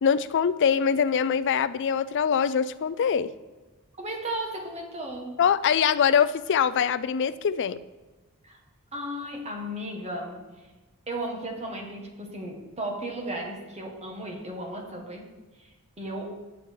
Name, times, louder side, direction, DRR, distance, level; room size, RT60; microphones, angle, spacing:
voice 1, 0.0-3.3 5.4-7.8, left 7 dB, 55° left, 14 dB, 0.4 m, -23 dB
voice 2, 4.0-5.4 8.4-8.6 8.9-10.4 11.1-15.3 15.6-15.7 16.0-16.4, right 1 dB, 30° right, 1 dB, 1.6 m, -35 dB
9.0 x 8.5 x 4.7 m, 1.2 s
head